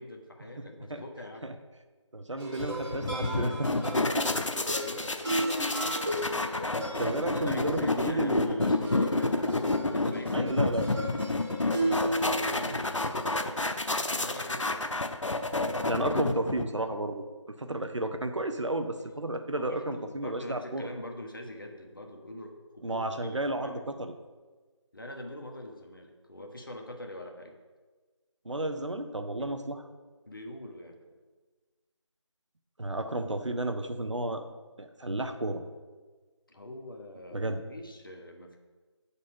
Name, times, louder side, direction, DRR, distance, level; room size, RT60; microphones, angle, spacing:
voice 1, 0.0-1.5 4.4-5.2 6.8-10.9 12.1-14.9 19.5-24.0 24.9-27.6 29.4-29.5 30.3-31.0 36.5-38.6, left 1 dB, 45° left, 2 dB, 0.9 m, -44 dB
voice 2, 2.1-4.3 6.3-8.8 10.3-11.3 11.8-12.2 15.9-17.2 17.6-20.9 22.8-24.1 28.4-29.8 32.8-34.4 34.8-35.6 37.3-37.6, right 1 dB, 70° right, 7 dB, 0.8 m, -33 dB
sound 1, 2.4-13.3, right 1 dB, 40° right, 2.6 m, -35 dB
sound 2, 2.6-16.9, left 2 dB, 80° left, 0.6 m, -30 dB
8.7 x 4.1 x 5.3 m, 1.3 s
figure-of-eight pair, 165°, 16 cm